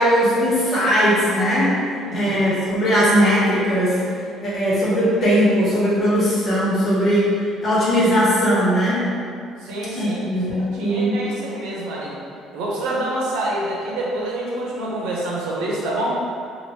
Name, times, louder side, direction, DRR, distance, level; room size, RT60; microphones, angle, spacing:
voice 1, 0.0-1.7 2.1-4.0 4.4-7.3 7.6-9.0 9.9-11.2, equal, 35° left, -9 dB, 1.2 m, -19 dB
voice 2, 9.6-10.2 10.5-12.1 12.5-16.1, right 1 dB, 90° right, -4 dB, 0.7 m, -27 dB
2.9 x 2.6 x 3.0 m, 2.4 s
cardioid pair, 120°, 0 cm